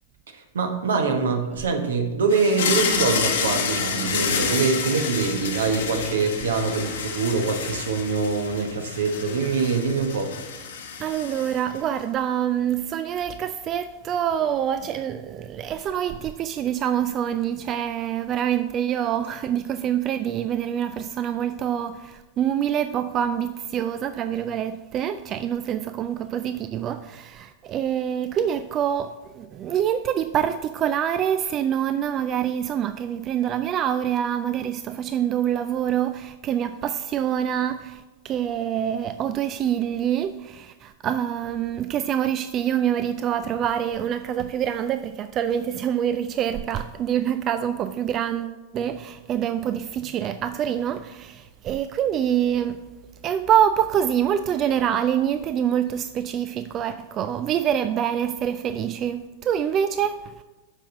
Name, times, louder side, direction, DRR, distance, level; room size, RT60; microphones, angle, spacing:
voice 1, 0.3-10.4, right 4 dB, 70° right, 1.1 m, -24 dB
sound 1, 2.3-11.8, left 6 dB, 65° left, 1.1 m, -29 dB
voice 2, 11.0-52.8 53.2-60.4, right 9 dB, 35° right, 0.3 m, -26 dB
7.2 x 5.3 x 5.4 m
figure-of-eight pair, 95°, 0 cm